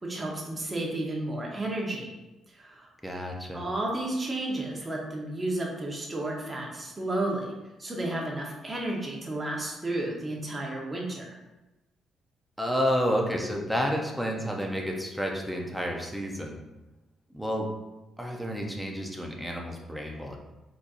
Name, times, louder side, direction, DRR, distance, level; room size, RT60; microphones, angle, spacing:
voice 1, 0.0-2.1 2.5-2.9 3.5-7.5 7.8-11.3, right 1 dB, 20° right, -2 dB, 1.2 m, -32 dB
voice 2, 3.0-3.6 12.6-16.6 17.3-17.7 18.2-20.4, equal, ahead, 0 dB, 0.8 m, -30 dB
4.3 x 4.2 x 2.6 m, 1.0 s
cardioid pair, 90°, 0 cm